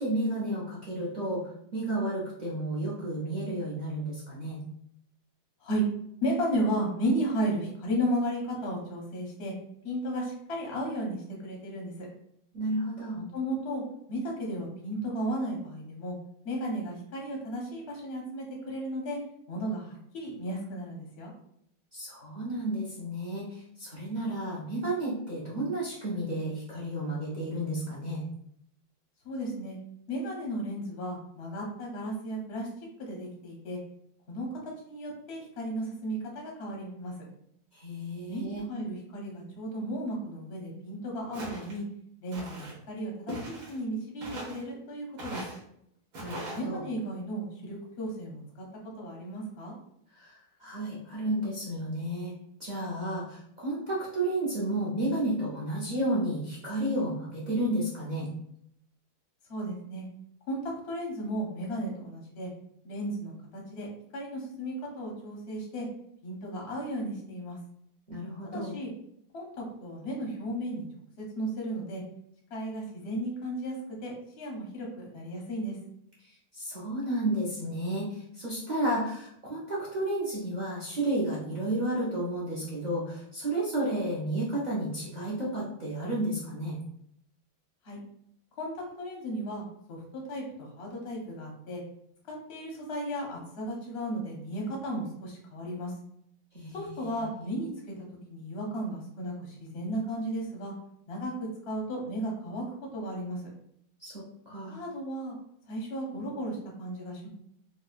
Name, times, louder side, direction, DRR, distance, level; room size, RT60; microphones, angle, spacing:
voice 1, 0.0-1.4 1.7-4.6 12.5-13.2 21.9-28.2 37.7-38.7 46.2-46.8 50.1-52.3 52.6-58.3 68.1-68.7 76.5-86.7 96.5-97.5 104.0-104.8, right 1 dB, 55° right, -7 dB, 0.5 m, -32 dB
voice 2, 6.2-9.5 9.8-12.1 13.1-13.8 14.1-16.2 16.4-19.2 19.5-21.3 29.2-29.8 30.1-32.7 33.0-33.8 34.3-34.5 34.8-37.2 38.3-41.8 42.2-45.4 46.5-49.7 59.5-60.0 60.5-62.5 62.8-63.9 64.1-65.9 66.2-67.6 68.4-68.9 69.3-70.9 71.4-72.0 72.5-73.8 74.0-75.8 87.8-88.0 88.6-91.8 92.3-95.9 96.7-97.7 98.3-100.7 101.1-101.3 101.7-102.6 102.9-103.4 104.7-105.3 105.7-107.3, right 1 dB, 55° left, -1 dB, 0.7 m, -34 dB
Walk footsteps, 41.3-41.8 42.3-42.8 43.3-43.8 44.2-44.6 45.2-45.6 46.1-46.6, right 1 dB, 90° right, 1.9 m, -40 dB
4.7 x 2.2 x 2.4 m, 0.71 s
omnidirectional pair, 2.1 m